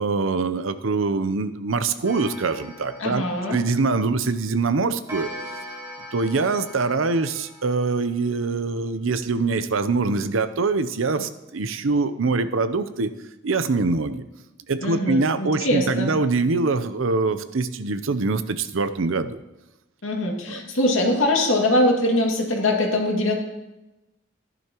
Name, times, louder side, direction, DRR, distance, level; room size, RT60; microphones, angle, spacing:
voice 1, 0.0-5.3 6.1-13.1 13.4-14.2 14.7-19.4 20.5-20.6, right 3 dB, 85° right, 11 dB, 0.7 m, -24 dB
Clock, 2.0-4.3 5.1-8.5, equal, 15° right, 2.6 m, -40 dB
voice 2, 3.0-3.6 14.8-16.1 20.0-23.4, left 1 dB, 80° left, 0 dB, 2.3 m, -22 dB
15.0 x 11.0 x 3.0 m, 0.98 s
head